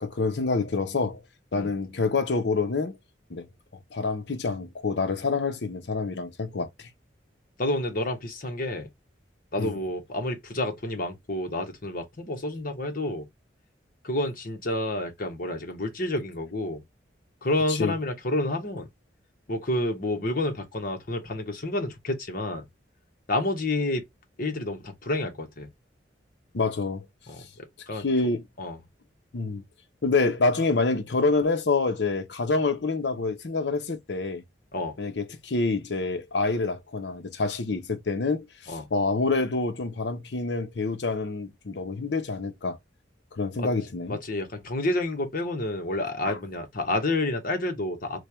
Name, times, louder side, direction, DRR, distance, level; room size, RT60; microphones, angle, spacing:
voice 1, 0.0-1.2 1.5-3.0 3.3-3.4 3.9-6.9 9.6-9.7 17.7-17.9 26.5-27.1 27.9-28.4 29.3-29.6 30.0-34.4 35.0-42.8 43.3-44.2 46.3-46.4, left 3 dB, 70° left, 0.7 m, -27 dB
voice 2, 7.6-8.9 9.5-13.3 14.0-16.8 17.4-18.9 19.5-22.7 23.3-24.0 24.4-25.7 27.3-28.0 28.6-28.8 34.7-35.0 38.7-38.9 43.6-43.7 44.1-48.2, left 1 dB, 50° left, 1.1 m, -29 dB
3.2 x 2.3 x 4.2 m
head